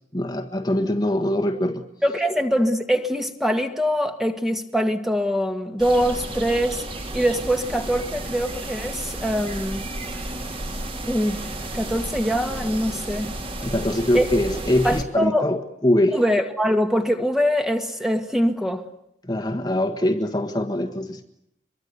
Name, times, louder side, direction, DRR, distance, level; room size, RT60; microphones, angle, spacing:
voice 1, 0.1-1.8 13.6-16.2 19.2-21.3, left 1 dB, 20° left, 1.5 m, -23 dB
voice 2, 2.0-9.8 11.1-11.4 11.7-13.3 14.1-14.3 14.8-15.5 16.1-18.8, equal, ahead, 1.7 m, -23 dB
sound 1, 5.8-15.0, right 1 dB, 30° right, 3.0 m, -32 dB
25.5 x 23.0 x 8.2 m
head